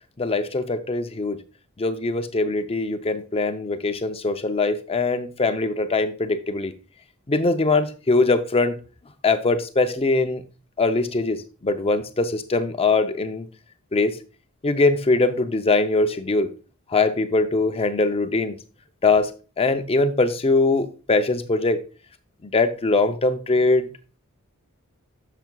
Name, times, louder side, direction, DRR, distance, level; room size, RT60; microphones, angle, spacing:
voice 1, 0.2-1.4 1.8-6.7 7.3-8.8 9.2-10.4 10.8-13.5 13.9-14.2 14.6-16.5 16.9-18.6 19.0-19.3 19.6-21.8 22.4-23.9, left 3 dB, 25° left, 0.6 m, -22 dB
10.5 x 6.8 x 2.3 m
head